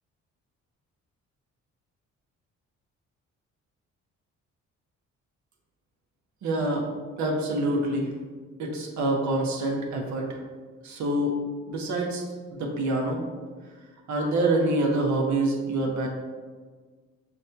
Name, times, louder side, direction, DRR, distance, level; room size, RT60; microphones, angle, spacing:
voice 1, 6.4-6.9 7.2-8.1 8.6-10.4 10.8-11.4 11.7-12.2 12.5-13.2 14.1-16.1, right 2 dB, 70° right, 0 dB, 0.9 m, -26 dB
6.3 x 2.2 x 2.8 m, 1.5 s
cardioid pair, 90°, 30 cm